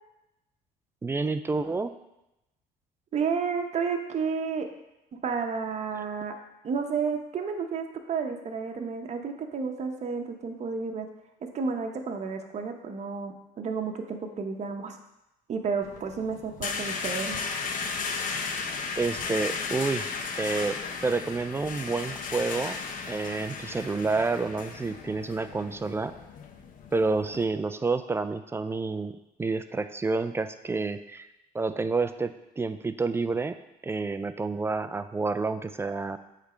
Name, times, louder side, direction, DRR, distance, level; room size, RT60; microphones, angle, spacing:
voice 1, 1.0-1.9 19.0-20.1 20.4-22.8 23.1-26.1 26.9-31.3 31.5-33.6 33.8-36.2, right 3 dB, 15° right, 11 dB, 0.3 m, -29 dB
voice 2, 3.1-4.7 5.1-6.3 6.6-11.1 11.4-15.0 15.5-17.5, right 5 dB, 40° right, 4 dB, 0.9 m, -31 dB
sound 1, 15.8-27.4, left 5 dB, 50° left, 0.8 m, -35 dB
8.0 x 3.3 x 5.0 m, 0.91 s
cardioid pair, 110°, 17 cm